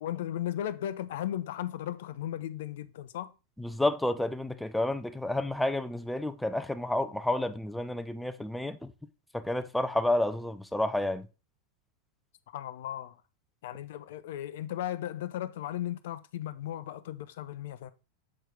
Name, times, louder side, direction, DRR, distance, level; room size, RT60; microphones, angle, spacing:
voice 1, 0.0-3.3 12.5-13.2 13.6-17.9, left 12 dB, 55° left, 0.5 m, -36 dB
voice 2, 3.6-8.8 9.3-11.3, left 1 dB, 5° left, 0.6 m, -30 dB
7.6 x 4.6 x 3.7 m
figure-of-eight pair, 90°, 0 cm